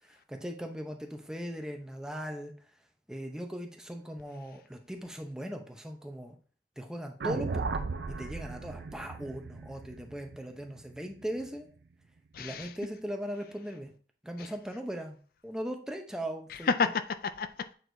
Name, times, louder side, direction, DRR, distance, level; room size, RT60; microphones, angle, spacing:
voice 1, 0.0-2.5 3.1-6.4 6.8-11.7 12.4-13.9 14.2-15.2 15.4-16.7, equal, 5° right, 0.7 m, -39 dB
sound 1, 7.2-11.5, right 4 dB, 70° right, 0.5 m, -36 dB
voice 2, 12.3-12.7 14.4-14.5 16.5-17.7, left 5 dB, 55° left, 0.4 m, -31 dB
8.2 x 4.6 x 2.7 m
head